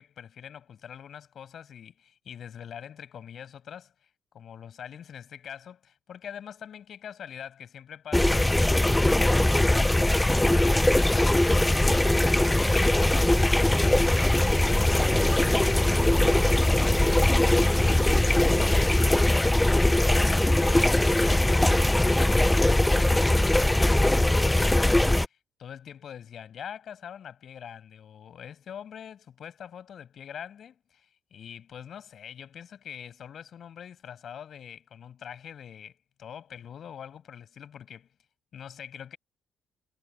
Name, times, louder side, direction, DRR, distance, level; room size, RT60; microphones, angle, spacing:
voice 1, 0.0-4.1 4.3-16.4 16.7-19.3 19.7-21.7 22.0-38.1 38.5-39.2, left 8 dB, 60° left, 7.6 m, -44 dB
sound 1, 8.1-25.3, left 1 dB, 10° left, 0.5 m, -21 dB
cardioid pair, 90°, 0 cm